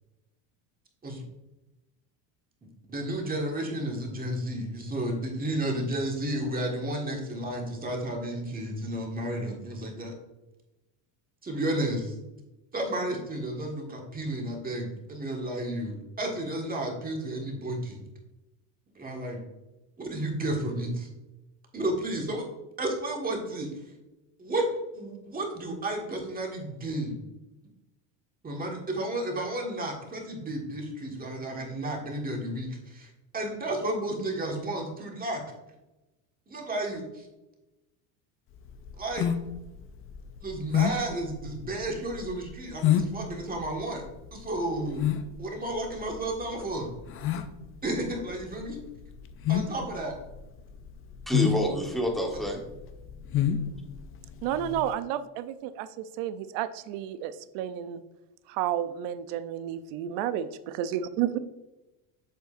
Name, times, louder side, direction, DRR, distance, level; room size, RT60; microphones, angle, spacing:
voice 1, 2.9-10.1 11.4-12.2 12.7-18.0 18.9-19.4 20.0-21.1 21.7-22.4 22.8-23.7 24.4-24.7 24.9-27.2 28.4-35.4 36.5-37.3 39.0-39.3 40.4-44.0 44.3-45.1 45.4-46.9 47.8-48.8 49.5-50.2, right 1 dB, 20° right, 0 dB, 1.6 m, -32 dB
sound 1, 38.6-54.9, left 10 dB, 30° left, 0.4 m, -30 dB
voice 2, 51.3-52.7, equal, ahead, 1 dB, 1.2 m, -28 dB
voice 3, 54.4-58.0 58.5-61.4, right 10 dB, 70° right, 13 dB, 0.7 m, -31 dB
8.1 x 6.4 x 2.5 m, 1.0 s
cardioid pair, 135°, 47 cm